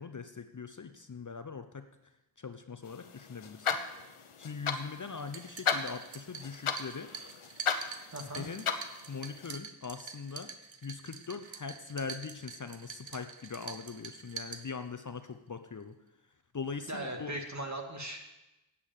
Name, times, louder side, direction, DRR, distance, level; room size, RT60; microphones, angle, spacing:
voice 1, 0.0-1.9 2.4-3.8 4.4-7.1 8.3-8.7 9.1-10.5 10.8-16.0 16.5-17.3, left 5 dB, 40° left, 9 dB, 0.7 m, -41 dB
sound 1, 2.9-9.6, left 6 dB, 80° left, 0.9 m, -36 dB
sound 2, 5.2-15.2, right 6 dB, 65° right, 0.9 m, -46 dB
voice 2, 8.1-8.5 16.9-18.2, right 1 dB, 35° right, 2 dB, 2.2 m, -38 dB
8.5 x 8.4 x 7.4 m, 0.97 s
cardioid pair, 45°, 49 cm